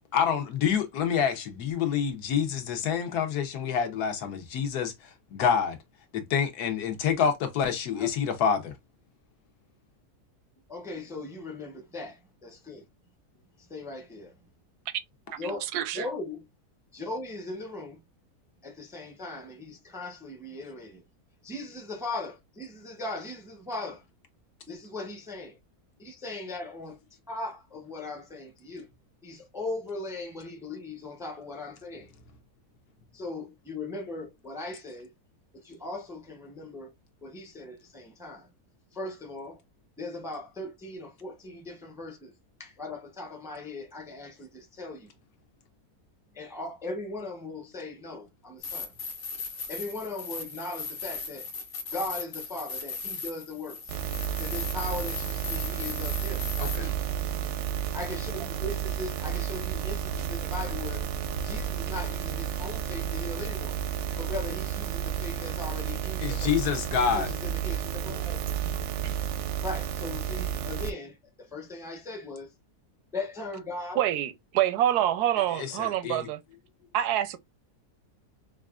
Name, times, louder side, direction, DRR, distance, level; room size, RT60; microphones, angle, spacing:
voice 1, 0.1-4.9 5.3-5.8 6.1-8.7 56.6-56.9 66.2-67.3 75.6-76.3, left 7 dB, 75° left, 1.4 m, -27 dB
voice 2, 10.7-12.8 13.6-14.4 15.4-15.7 15.9-16.4 16.9-18.0 18.6-21.0 21.4-24.0 24.7-25.6 26.0-27.0 27.3-28.9 29.2-32.1 33.1-35.1 35.5-36.9 37.2-38.5 38.9-39.6 40.0-42.3 42.6-45.1 46.3-48.9 49.7-51.5 51.9-53.9 54.4-57.0 57.9-61.1 61.4-63.8 64.2-66.6 67.1-68.6 69.6-72.5 73.1-74.0, left 2 dB, 5° right, 0.5 m, -38 dB
voice 3, 15.3-16.1 74.0-76.4 76.9-77.4, right 12 dB, 85° right, 1.1 m, -27 dB
sound 1, 48.6-56.8, left 4 dB, 50° left, 1.4 m, -38 dB
sound 2, 53.9-70.9, right 9 dB, 65° right, 0.7 m, -32 dB
5.0 x 2.5 x 2.3 m
omnidirectional pair, 1.7 m